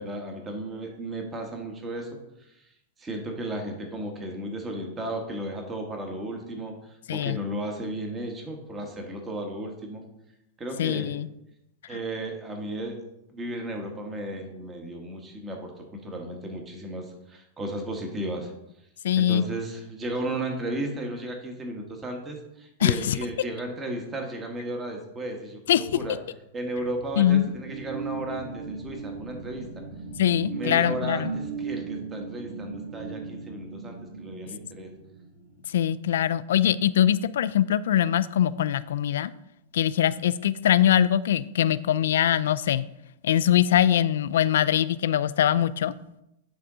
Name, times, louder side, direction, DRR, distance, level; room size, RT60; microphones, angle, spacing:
voice 1, 0.0-2.1 2.5-2.7 3.0-10.0 10.6-11.1 11.9-13.0 13.3-18.5 19.2-26.2 26.5-29.6 30.5-34.9, right 1 dB, 20° right, 3 dB, 1.3 m, -34 dB
voice 2, 10.8-11.3 19.0-19.4 22.8-23.2 25.7-25.8 27.2-27.5 30.2-31.3 35.7-39.3 39.7-42.8 43.2-45.9, left 11 dB, 80° left, 16 dB, 0.3 m, -22 dB
sound 1, 26.4-35.7, right 5 dB, 70° right, 1.9 m, -37 dB
9.1 x 3.6 x 3.8 m, 0.85 s
hypercardioid pair, 120°, 0 cm